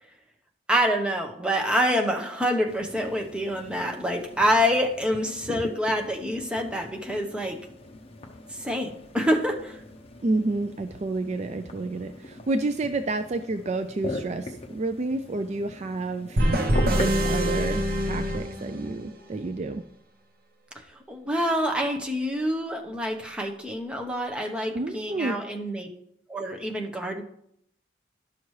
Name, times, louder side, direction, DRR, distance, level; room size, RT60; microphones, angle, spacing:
voice 1, 0.7-7.6 8.5-9.8 21.1-25.9 26.3-27.2, equal, 5° right, 1 dB, 0.8 m, -26 dB
sound 1, 2.7-17.3, left 2 dB, 30° left, 0.8 m, -40 dB
voice 2, 10.2-16.4 17.0-19.8 24.7-25.4, right 2 dB, 40° right, 8 dB, 0.4 m, -29 dB
sound 2, 16.4-19.2, equal, 55° right, 0.9 m, -25 dB
12.0 x 5.9 x 3.2 m, 0.73 s
head